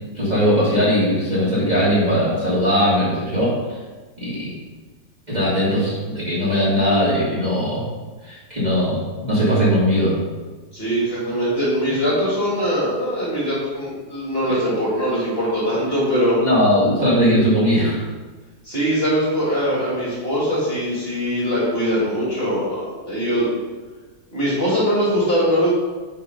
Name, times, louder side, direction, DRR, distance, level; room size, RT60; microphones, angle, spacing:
voice 1, 0.1-3.8 4.2-4.6 5.3-7.8 8.2-10.2 14.5-14.6 16.4-18.0, equal, 25° right, -10 dB, 2.4 m, -19 dB
voice 2, 10.7-16.4 18.6-23.5 24.3-25.7, equal, 35° left, -7 dB, 2.1 m, -21 dB
5.5 x 4.8 x 5.4 m, 1.3 s
omnidirectional pair, 1.8 m